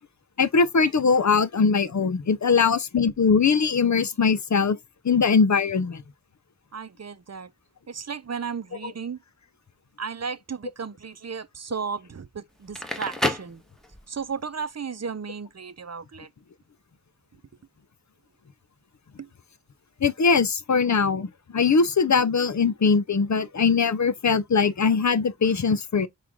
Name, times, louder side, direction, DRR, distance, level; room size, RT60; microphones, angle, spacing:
voice 1, 0.4-4.8 5.0-6.0 8.8-8.9 20.0-26.1, left 5 dB, 60° left, 0.6 m, -21 dB
voice 2, 6.7-7.5 7.9-9.2 10.0-13.6 14.1-16.3 19.2-19.3, right 6 dB, 55° right, 0.6 m, -34 dB
Crackle, 12.6-14.3, left 1 dB, ahead, 1.2 m, -30 dB
6.1 x 2.4 x 3.6 m
wide cardioid pair, 50°, 32 cm